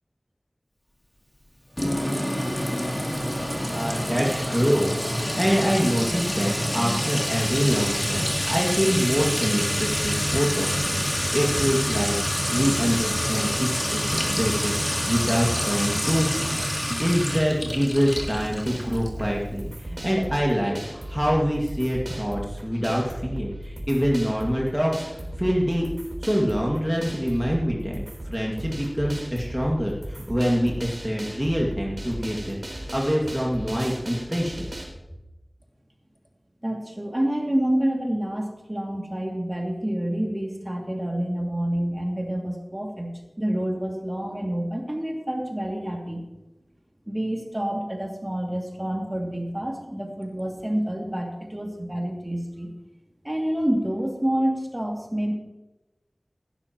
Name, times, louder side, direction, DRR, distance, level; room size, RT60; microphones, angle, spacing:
Sink (filling or washing) / Trickle dribble / Fill (with liquid), 1.8-19.2, equal, 20° left, 2.8 m, -27 dB
voice 1, 3.7-25.9 26.2-32.6 32.9-34.6, equal, 5° right, -2 dB, 2.0 m, -25 dB
sound 1, 18.2-34.8, right 1 dB, 60° right, 3.6 m, -36 dB
voice 2, 36.6-46.3 47.1-52.7 53.2-55.3, right 1 dB, 25° right, 1 dB, 2.4 m, -28 dB
15.5 x 12.5 x 3.0 m, 1.0 s
wide cardioid pair, 45°, 0 cm